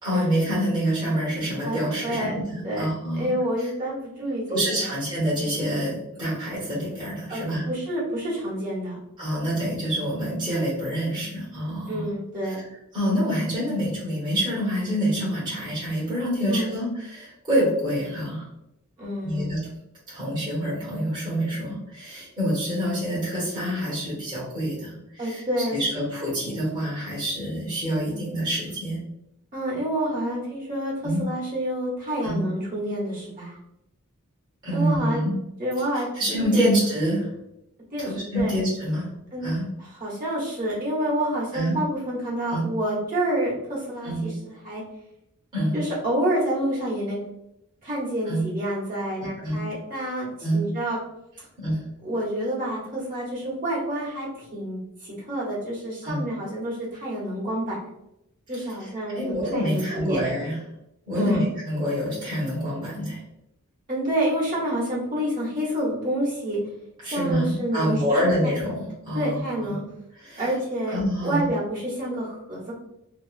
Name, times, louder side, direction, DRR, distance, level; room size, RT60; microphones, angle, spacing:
voice 1, 0.0-3.3 3.6-3.7 4.5-7.7 9.2-12.1 12.4-12.5 12.9-18.5 19.2-19.6 20.1-25.4 25.7-29.0 31.0-31.2 32.2-32.4 34.6-35.3 35.9-37.3 38.0-39.1 39.4-39.7 41.5-41.8 42.5-42.6 44.0-44.2 45.5-45.8 48.3-48.4 49.4-49.6 50.4-50.6 51.6-51.8 56.0-56.3 58.6-60.6 61.1-63.2 67.0-69.8 70.2-70.5 70.9-71.4, equal, 20° right, -9 dB, 1.0 m, -26 dB
voice 2, 1.6-2.3 2.6-2.8 3.2-4.9 7.3-9.0 11.9-12.6 16.5-16.7 19.0-19.6 25.2-25.8 29.5-30.9 31.2-33.6 34.7-35.2 35.6-36.7 37.9-38.1 38.3-38.5 39.3-39.5 39.8-44.8 45.7-47.2 47.8-51.0 52.0-57.8 58.5-60.2 61.1-61.4 63.9-66.6 67.0-68.5 69.1-69.8 70.4-72.7, right 1 dB, 40° right, -7 dB, 1.2 m, -28 dB
2.8 x 2.4 x 2.4 m, 0.84 s
head